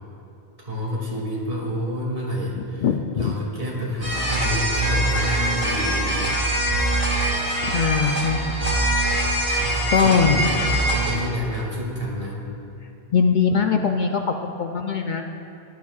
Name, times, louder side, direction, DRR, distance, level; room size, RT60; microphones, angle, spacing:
voice 1, 0.6-2.9 3.1-6.3 9.6-12.4, left 1 dB, 60° right, -4 dB, 2.6 m, -29 dB
voice 2, 2.8-3.3 7.6-8.6 9.9-10.4 13.1-15.3, left 6 dB, 55° left, 4 dB, 0.6 m, -21 dB
sound 1, 4.0-11.2, right 1 dB, 45° right, 2.8 m, -23 dB
17.0 x 12.0 x 2.4 m, 2.7 s
omnidirectional pair, 1.1 m